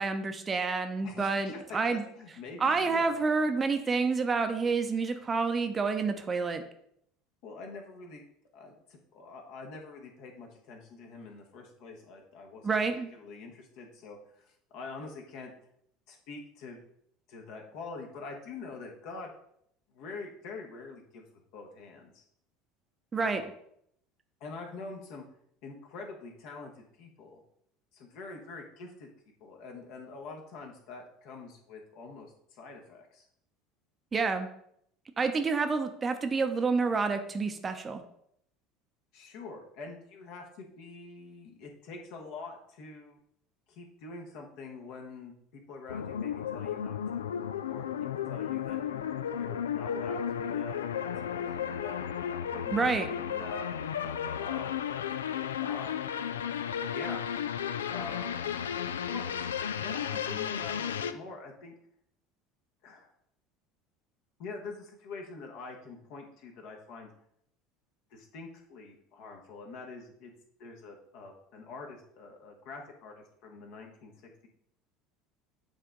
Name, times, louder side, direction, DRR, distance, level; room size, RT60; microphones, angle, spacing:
voice 1, 0.0-2.0 2.6-6.6 12.6-13.1 23.1-23.4 34.1-34.5 35.2-38.0 52.7-53.1, right 4 dB, 25° right, 7 dB, 0.7 m, -28 dB
voice 2, 1.0-3.1 7.4-8.2 8.5-12.7 13.1-15.5 16.1-16.8 17.3-19.3 19.9-21.2 21.5-22.2 23.2-23.5 24.4-25.2 25.6-27.4 27.9-29.1 29.4-33.3 39.1-43.2 43.7-45.3 45.7-47.3 47.6-47.9 48.3-52.9 53.2-53.7 54.3-54.9 55.6-56.1 56.9-57.3 57.9-58.3 59.1-61.7 62.8-63.1 64.4-67.1 68.1-70.3 70.6-74.5, left 4 dB, 55° left, 1 dB, 1.2 m, -45 dB
sound 1, 45.9-61.1, left 8 dB, 75° left, 0.3 m, -34 dB
8.5 x 3.4 x 3.8 m, 0.71 s
figure-of-eight pair, 70°, 0 cm